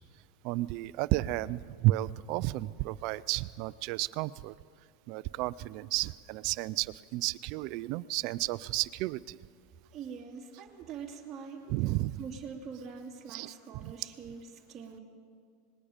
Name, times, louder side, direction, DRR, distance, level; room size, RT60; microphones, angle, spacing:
voice 1, 0.4-4.5 5.1-9.4 11.7-12.2 13.3-13.9, right 18 dB, 55° right, 18 dB, 0.4 m, -32 dB
voice 2, 9.9-11.7 12.2-14.4 14.7-15.0, right 6 dB, 25° right, -3 dB, 2.5 m, -43 dB
25.5 x 20.5 x 5.1 m, 2.2 s
supercardioid pair, 130°, 0 cm